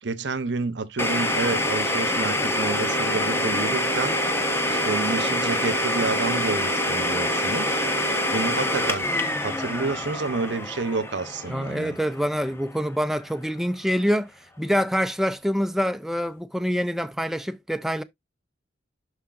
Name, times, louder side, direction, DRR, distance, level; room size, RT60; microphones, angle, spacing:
voice 1, 0.0-4.1 4.7-7.9 8.3-9.1 9.4-12.0, right 3 dB, 70° right, 0.8 m, -29 dB
Domestic sounds home sounds, 1.0-12.6, left 1 dB, 15° left, 0.9 m, -26 dB
voice 2, 11.5-18.0, equal, ahead, 0.4 m, -26 dB
11.5 x 4.8 x 2.5 m
head